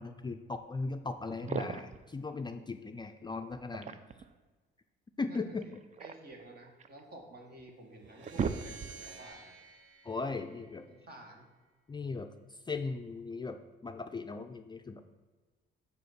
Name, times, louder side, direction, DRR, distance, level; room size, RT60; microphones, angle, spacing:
voice 1, 0.0-4.0 5.2-5.6 10.0-10.9 11.9-12.3 12.7-15.0, left 3 dB, 20° left, 7 dB, 0.4 m, -38 dB
sound 1, 1.3-2.1 3.5-4.3 5.6-7.0 7.6-7.7 8.0-9.2, right 6 dB, 35° right, 0.4 m, -38 dB
voice 2, 5.3-5.7 6.0-9.6 10.9-11.5, right 2 dB, 50° right, 2 dB, 1.5 m, -51 dB
sound 2, 8.0-11.3, right 4 dB, 80° right, 0.9 m, -52 dB
5.2 x 4.9 x 6.5 m, 1.3 s
cardioid pair, 90°, 20 cm